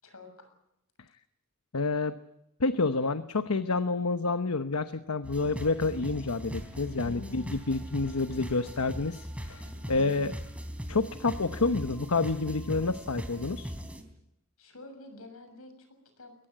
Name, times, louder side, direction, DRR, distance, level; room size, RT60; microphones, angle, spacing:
voice 1, 0.0-0.5 7.0-7.6 9.8-10.4 14.6-16.4, left 2 dB, 70° left, 8 dB, 6.8 m, -49 dB
voice 2, 1.7-2.1 2.6-10.3 10.9-13.7, left 3 dB, 90° left, 10 dB, 1.0 m, -29 dB
sound 1, 5.2-14.0, equal, 5° right, 3.5 m, -40 dB
23.0 x 19.0 x 9.1 m, 0.83 s
head